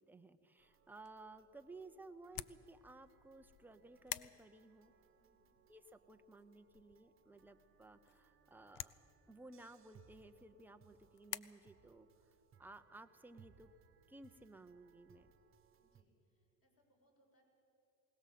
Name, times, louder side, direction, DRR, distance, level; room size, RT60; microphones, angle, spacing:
voice 1, 0.0-4.9 5.7-13.7 14.1-15.3, right 2 dB, 5° right, 7 dB, 0.7 m, -57 dB
sound 1, 0.6-16.0, right 7 dB, 25° right, 1.4 m, -70 dB
sound 2, 0.8-11.4, left 14 dB, 50° left, 0.6 m, -53 dB
voice 2, 5.2-5.5 15.8-17.4, right 1 dB, 30° left, 0 dB, 5.9 m, -77 dB
21.0 x 18.5 x 7.6 m, 2.9 s
cardioid pair, 125°, 47 cm